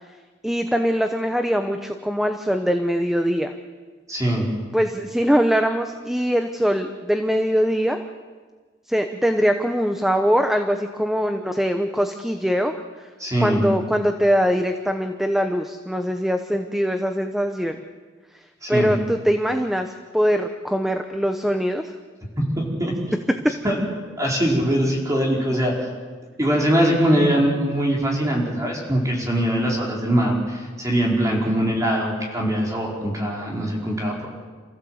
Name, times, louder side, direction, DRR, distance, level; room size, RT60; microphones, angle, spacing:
voice 1, 0.4-3.5 4.7-8.0 8.9-13.1 13.4-17.8 18.7-21.9 23.4-23.5 26.8-27.4, equal, ahead, 6 dB, 0.9 m, -22 dB
voice 2, 4.1-4.5 13.2-13.6 18.6-18.9 22.4-22.9 23.6-23.9 24.2-25.7 26.4-34.3, right 1 dB, 20° right, -2 dB, 4.9 m, -22 dB
28.0 x 15.5 x 8.0 m, 1.4 s
head